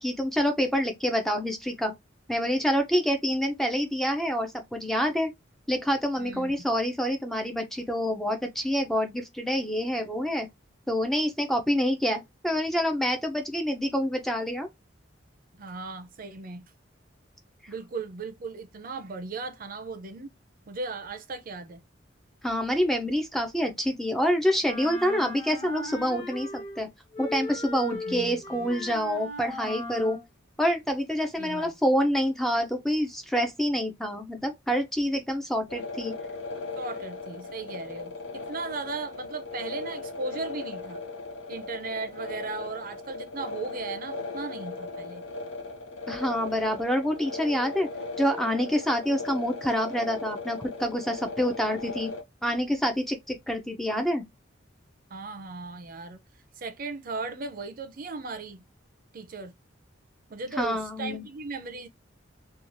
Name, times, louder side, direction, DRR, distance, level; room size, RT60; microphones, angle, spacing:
voice 1, 0.0-1.9 2.3-5.3 5.7-10.5 10.9-14.7 22.4-26.9 27.2-30.2 30.6-36.2 46.1-47.9 48.2-52.1 52.4-54.2 60.6-61.2, equal, ahead, 0.4 m, -27 dB
voice 2, 6.2-6.5 15.6-16.6 17.7-20.3 20.7-21.8 28.1-28.7 31.4-31.7 36.8-41.0 41.5-45.2 55.1-56.2 56.6-58.6 59.1-59.5 60.3-61.9, right 3 dB, 50° right, 0.5 m, -37 dB
Wind instrument woodwind instrument, 24.6-26.8 27.1-30.2, left 1 dB, 35° left, 1.0 m, -38 dB
sound 1, 35.7-52.2, left 3 dB, 85° left, 0.7 m, -38 dB
3.0 x 2.3 x 2.6 m
head